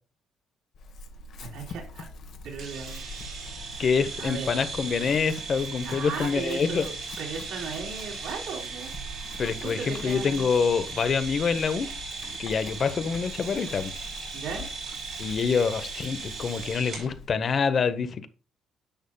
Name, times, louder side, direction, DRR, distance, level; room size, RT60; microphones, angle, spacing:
Chewing mastication / Livestock farm animals working animals, 0.7-17.3, left 3 dB, 55° left, 1.2 m, -44 dB
voice 1, 1.4-2.1 2.4-3.0 4.2-4.5 5.8-6.9 7.2-8.9 9.4-10.5 14.3-14.7, right 5 dB, 80° right, -1 dB, 3.2 m, -36 dB
sound 1, 2.6-17.1, right 4 dB, 55° right, 4.5 m, -38 dB
voice 2, 3.8-6.9 9.4-11.9 12.4-13.9 15.2-18.3, left 6 dB, 35° left, 11 dB, 0.8 m, -26 dB
10.0 x 7.1 x 2.2 m, 0.35 s
cardioid pair, 160°, 0 cm